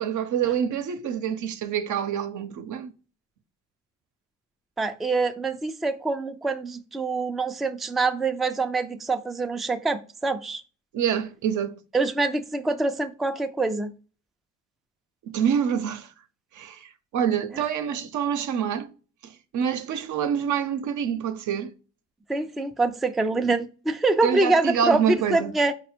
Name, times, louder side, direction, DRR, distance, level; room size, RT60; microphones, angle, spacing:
voice 1, 0.0-2.9 10.9-11.8 15.2-16.1 16.5-18.9 19.2-21.7 24.2-25.5, right 8 dB, 75° right, 0.7 m, -26 dB
voice 2, 4.8-10.6 11.9-13.9 22.3-25.7, right 3 dB, ahead, 0.3 m, -25 dB
4.8 x 2.1 x 4.3 m
cardioid pair, 90°, 30 cm